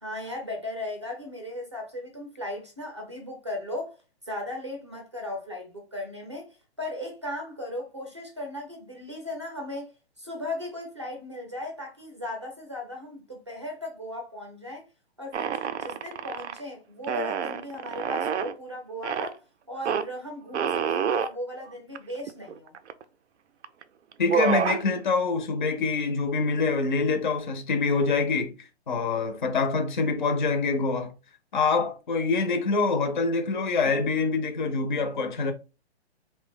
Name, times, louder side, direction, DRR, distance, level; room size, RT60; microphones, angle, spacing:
voice 1, 0.0-4.0 4.2-9.9 10.2-14.8 15.2-19.4 19.7-22.7, left 1 dB, 25° right, 0.5 m, -37 dB
sound 1, 15.3-16.6 17.0-18.5 19.0-19.3 19.8-20.0 20.5-21.3 21.9-22.0 22.3-23.0 23.6-23.8 24.1-24.8, right 7 dB, 90° right, 0.5 m, -28 dB
voice 2, 24.2-28.5 28.9-31.1 31.5-35.5, left 4 dB, 45° left, 0.4 m, -25 dB
2.7 x 2.1 x 3.5 m
hypercardioid pair, 180°, 33 cm